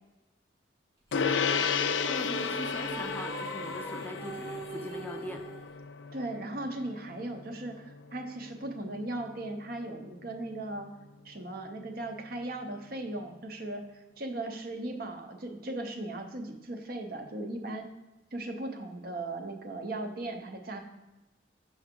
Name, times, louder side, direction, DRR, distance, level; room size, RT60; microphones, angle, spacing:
Gong, 1.1-10.8, left 6 dB, 80° left, 0.4 m, -34 dB
sound 1, 1.1-5.6, right 2 dB, 15° right, 0.9 m, -41 dB
voice 1, 2.0-5.4, left 1 dB, 10° left, 3 dB, 0.4 m, -41 dB
voice 2, 6.1-10.9 11.2-17.9 18.3-20.8, right 2 dB, 50° right, 4 dB, 0.7 m, -37 dB
6.2 x 5.8 x 3.7 m, 1.0 s
head